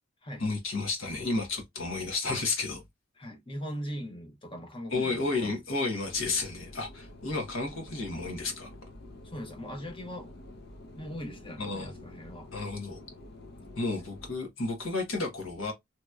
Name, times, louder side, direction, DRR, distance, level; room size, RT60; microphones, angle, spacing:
voice 1, 0.4-2.8 4.9-8.7 11.6-12.0 12.5-13.0 13.8-15.7, left 3 dB, 80° left, 1.2 m, -32 dB
voice 2, 3.2-5.6 9.2-10.3 11.0-12.5, equal, 25° left, 0.8 m, -40 dB
sound 1, 6.0-14.4, left 1 dB, 55° left, 0.7 m, -48 dB
3.0 x 2.8 x 2.3 m
head